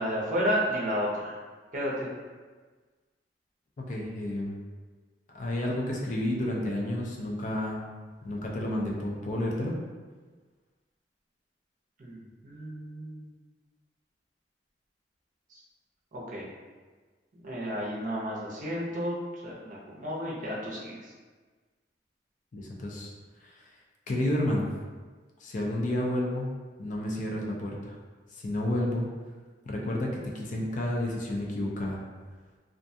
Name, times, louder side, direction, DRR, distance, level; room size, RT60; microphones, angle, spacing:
voice 1, 0.0-1.4 1.7-2.1 12.0-13.3 15.5-15.6 16.1-16.5 17.4-19.1 19.4-21.1, equal, 45° right, -5 dB, 0.7 m, -32 dB
voice 2, 3.8-4.6 5.3-7.8 8.2-9.7 22.5-23.1 23.4-23.7 24.1-24.7 25.4-26.5 26.8-28.0 28.3-29.1 29.7-32.0, left 1 dB, 45° left, -2 dB, 0.4 m, -31 dB
2.5 x 2.2 x 2.6 m, 1.4 s
head